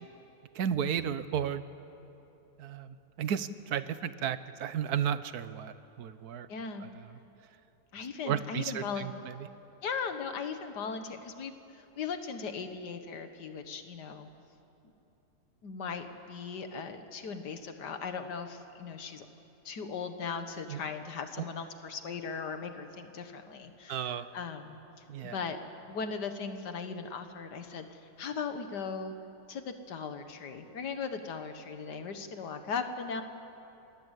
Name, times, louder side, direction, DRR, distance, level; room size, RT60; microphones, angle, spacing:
voice 1, 0.5-1.6 2.6-6.5 6.8-7.1 8.2-9.5 20.7-20.8 21.4-21.5 23.9-24.3 25.1-25.4, right 8 dB, 65° right, 13 dB, 1.2 m, -33 dB
voice 2, 6.5-6.9 7.9-9.1 9.8-14.3 15.6-19.3 19.7-24.8 25.2-25.6 25.9-29.1 29.5-33.2, left 5 dB, 65° left, 7 dB, 2.0 m, -38 dB
28.0 x 21.0 x 8.3 m, 3.0 s
omnidirectional pair, 1.9 m